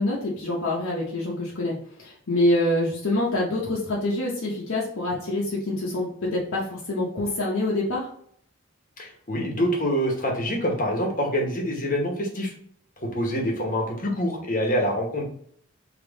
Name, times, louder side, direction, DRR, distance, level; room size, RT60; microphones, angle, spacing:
voice 1, 0.0-8.1, left 1 dB, 75° left, -5 dB, 0.9 m, -26 dB
voice 2, 9.0-12.5 13.0-15.2, equal, 40° left, 0 dB, 0.9 m, -26 dB
3.4 x 2.9 x 3.9 m, 0.63 s
head